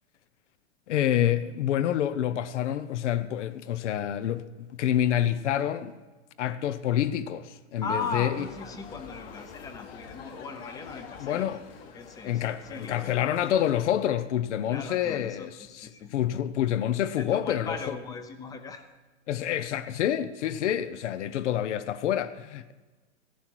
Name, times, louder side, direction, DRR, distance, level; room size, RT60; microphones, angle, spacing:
voice 1, 0.9-5.9 6.4-8.3 11.2-11.6 12.2-15.5 16.1-17.8 19.3-22.7, left 11 dB, 75° left, 0.8 m, -27 dB
voice 2, 7.8-11.5 11.8-13.4 14.7-16.1 17.2-18.9, left 4 dB, 10° left, 0.7 m, -38 dB
sound 1, 8.3-13.9, left 6 dB, 50° left, 1.8 m, -46 dB
14.5 x 11.5 x 4.6 m
hypercardioid pair, 145°, 36 cm